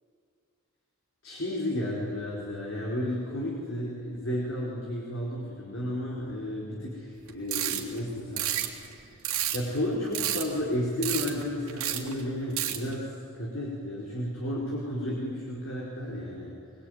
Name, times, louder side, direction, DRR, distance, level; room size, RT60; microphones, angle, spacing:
voice 1, 1.2-8.5 8.8-9.2 9.5-16.5, left 1 dB, 65° left, -4 dB, 4.8 m, -32 dB
sound 1, 7.3-8.0 8.4-9.8 10.1-10.7 11.0-11.4 11.7-12.2 12.5-12.9, right 12 dB, 80° right, 3.0 m, -30 dB
24.5 x 22.0 x 9.5 m, 2.3 s
head